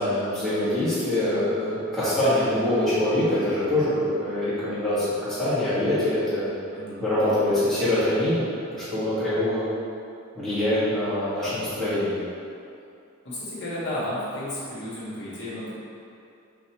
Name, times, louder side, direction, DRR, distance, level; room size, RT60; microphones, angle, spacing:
voice 1, 0.0-6.5 7.0-9.6 10.3-12.2, left 1 dB, ahead, -14 dB, 1.5 m, -24 dB
voice 2, 6.7-7.1 13.2-15.7, left 1 dB, 55° left, -10 dB, 1.4 m, -32 dB
5.2 x 2.9 x 2.9 m, 2.6 s
head